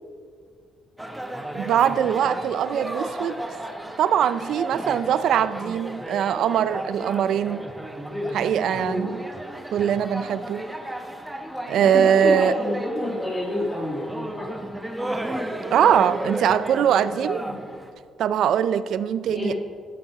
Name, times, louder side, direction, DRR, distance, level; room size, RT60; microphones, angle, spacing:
sound 1, 1.0-17.9, right 1 dB, 5° right, 1.1 m, -34 dB
voice 1, 1.5-3.4 4.0-7.6 8.3-9.1 9.7-10.6 11.7-12.6 15.7-17.4 18.2-19.5, right 9 dB, 75° right, 15 dB, 0.4 m, -22 dB
voice 2, 8.1-8.4 8.8-9.2 11.8-14.5 17.4-17.6 19.3-19.5, left 1 dB, 30° left, -5 dB, 2.0 m, -28 dB
12.0 x 7.2 x 4.7 m, 2.1 s
cardioid pair, 90°, 0 cm